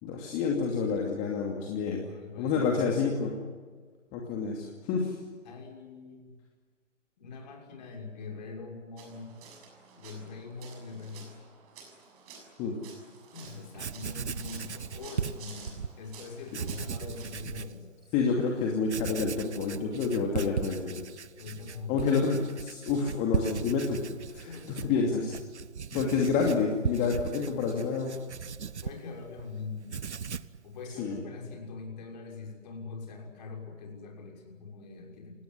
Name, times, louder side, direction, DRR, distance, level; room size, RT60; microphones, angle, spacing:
voice 1, 0.0-2.0 2.4-3.3 4.1-5.2 12.6-12.8 18.1-21.0 21.9-24.0 24.3-25.3 25.9-28.1 31.0-31.2, left 5 dB, 20° left, 0 dB, 2.6 m, -28 dB
voice 2, 1.5-3.1 5.4-6.3 7.2-9.4 9.9-11.3 13.3-17.9 21.4-21.9 24.4-25.2 27.4-27.7 28.8-30.0 30.6-35.4, left 4 dB, 35° left, 2 dB, 6.4 m, -43 dB
sound 1, 9.0-17.3, right 5 dB, 30° right, 6.8 m, -51 dB
Writing, 13.5-13.6 13.8-15.9 16.5-17.8 18.2-18.3 18.8-29.5 29.8-30.6, right 6 dB, 60° right, 1.0 m, -37 dB
28.5 x 19.0 x 9.8 m, 1.5 s
figure-of-eight pair, 135°, 38 cm